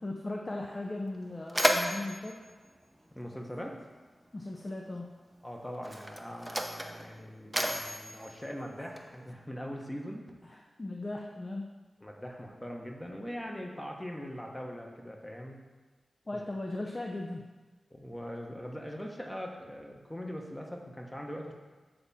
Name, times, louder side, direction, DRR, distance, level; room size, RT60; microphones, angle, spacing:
voice 1, 0.0-2.4 4.3-5.1 10.5-11.7 16.3-17.5, left 2 dB, 35° left, 0 dB, 0.6 m, -37 dB
Mechanisms, 0.6-0.7 1.0-3.8 4.8-4.9 5.7-9.3, equal, 10° right, 0.7 m, -33 dB
voice 2, 3.1-3.8 5.4-10.3 12.0-15.6 17.9-21.5, equal, 15° left, 1 dB, 1.1 m, -41 dB
7.7 x 3.6 x 4.2 m, 1.3 s
cardioid pair, 40°, 0 cm